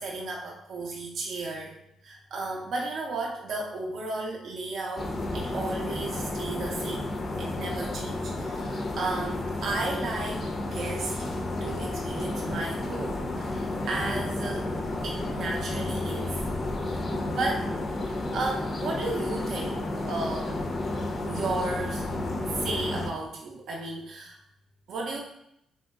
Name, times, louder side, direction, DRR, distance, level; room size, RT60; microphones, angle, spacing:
voice 1, 0.0-1.7 2.0-7.1 7.4-10.4 10.7-11.2 11.6-14.7 15.0-16.3 17.3-17.7 18.0-20.6 21.0-22.0 22.5-24.4 24.9-25.2, right 2 dB, 65° right, -1 dB, 0.4 m, -34 dB
sound 1, 5.0-23.1, left 2 dB, 35° left, 0.4 m, -31 dB
2.9 x 2.6 x 2.3 m, 0.77 s
cardioid pair, 90°, 0 cm